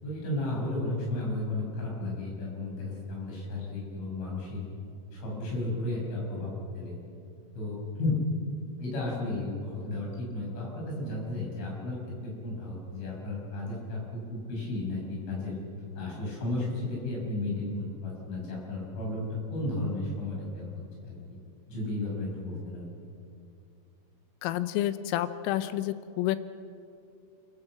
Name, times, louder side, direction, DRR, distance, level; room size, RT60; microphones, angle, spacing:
voice 1, 0.0-4.6 5.1-7.0 7.5-8.2 8.8-15.6 16.0-20.7 21.0-21.2 21.7-22.9, left 2 dB, 70° left, -2 dB, 8.5 m, -34 dB
voice 2, 24.4-26.4, left 14 dB, 85° left, 12 dB, 3.4 m, -29 dB
29.0 x 15.5 x 7.7 m, 2.6 s
omnidirectional pair, 5.8 m